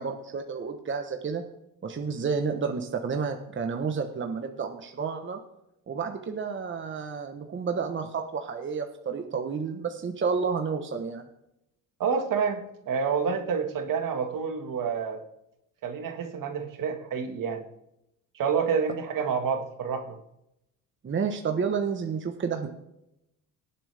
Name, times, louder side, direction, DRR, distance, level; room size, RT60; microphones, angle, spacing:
voice 1, 0.0-1.4 1.8-5.4 5.9-11.2 21.0-22.7, right 5 dB, 30° right, 5 dB, 1.2 m, -30 dB
voice 2, 12.0-15.2 15.8-17.6 18.3-20.2, right 6 dB, 60° right, 6 dB, 1.9 m, -28 dB
18.5 x 7.6 x 3.5 m, 0.82 s
cardioid pair, 100°, 36 cm